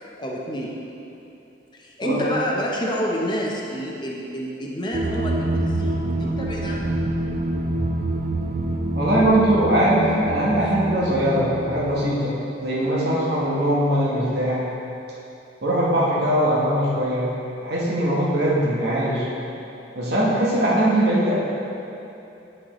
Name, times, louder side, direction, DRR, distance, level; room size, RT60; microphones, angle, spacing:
voice 1, 0.2-0.7 1.7-6.9 10.6-10.7, equal, 25° left, -2 dB, 0.6 m, -28 dB
sound 1, 4.9-12.1, right 1 dB, 35° right, 0.4 m, -26 dB
voice 2, 8.9-12.3 12.6-14.6 15.6-17.2 17.6-19.3 19.9-21.4, right 1 dB, 60° right, -7 dB, 1.0 m, -21 dB
9.9 x 4.5 x 3.0 m, 2.9 s
head